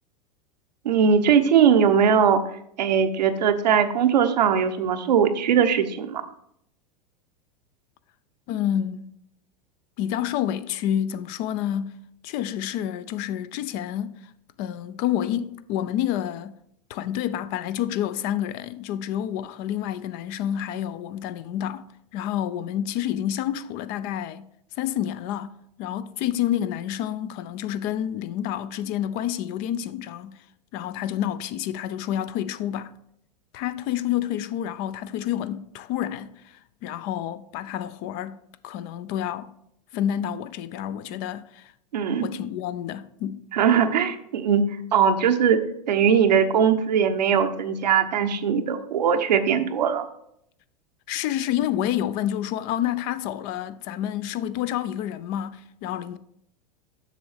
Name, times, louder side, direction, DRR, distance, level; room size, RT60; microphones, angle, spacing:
voice 1, 0.8-2.4 2.8-6.2 41.9-42.3 43.5-45.6 45.9-50.0, right 7 dB, 85° right, 0.8 m, -20 dB
voice 2, 8.5-9.1 10.0-14.2 14.6-16.6 16.9-21.9 22.1-24.4 24.8-30.4 30.7-32.9 33.5-38.4 38.6-39.5 39.9-41.7 42.2-43.4 51.1-56.2, left 11 dB, 45° left, 0.5 m, -29 dB
7.6 x 6.1 x 3.4 m
hypercardioid pair, 110°, 21 cm